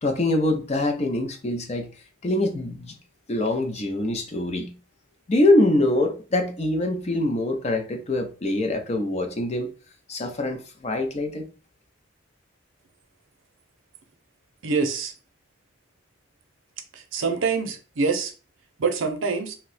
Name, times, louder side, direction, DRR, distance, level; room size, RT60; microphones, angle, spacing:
voice 1, 0.0-1.9 2.2-2.9 3.3-4.7 5.3-9.7 10.1-11.4, left 1 dB, 30° left, 0.4 m, -24 dB
voice 2, 14.6-15.1 16.9-18.3 18.8-19.5, right 4 dB, 75° right, 0.6 m, -25 dB
2.6 x 2.2 x 4.0 m
head